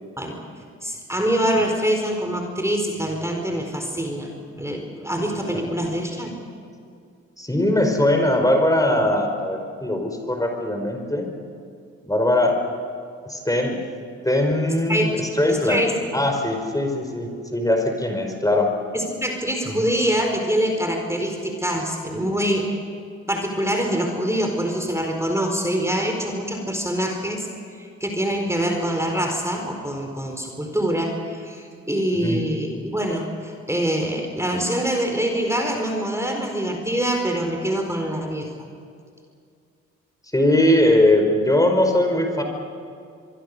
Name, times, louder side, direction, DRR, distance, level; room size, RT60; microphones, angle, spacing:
voice 1, 0.8-6.4 14.9-15.1 15.5-16.2 18.9-22.7 23.3-27.5 27.8-38.5, equal, 10° right, 3 dB, 4.6 m, -25 dB
voice 2, 7.4-11.3 12.0-12.6 13.2-13.8 14.2-15.9 16.1-18.7 19.6-19.9 32.2-32.4 40.3-42.4, left 1 dB, 10° left, 4 dB, 5.0 m, -20 dB
24.0 x 23.5 x 6.9 m, 2.3 s
hypercardioid pair, 45°, 33 cm